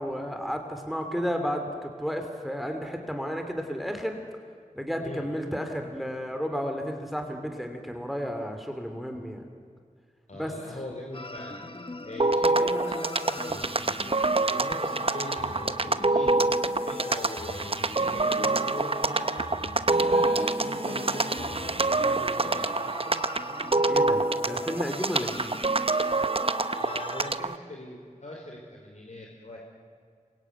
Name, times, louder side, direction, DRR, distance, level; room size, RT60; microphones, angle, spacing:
voice 1, 0.0-4.2 4.7-9.4 10.3-10.5 23.9-25.5, equal, ahead, 5 dB, 2.8 m, -32 dB
voice 2, 10.3-16.4 16.9-19.4 20.1-23.2 26.8-29.6, left 1 dB, 60° left, -1 dB, 4.2 m, -41 dB
sound 1, 11.1-27.3, left 2 dB, 40° left, 1.4 m, -40 dB
sound 2, 12.2-27.6, right 3 dB, 45° right, 0.9 m, -26 dB
27.5 x 23.0 x 9.4 m, 2.1 s
wide cardioid pair, 80°, 14 cm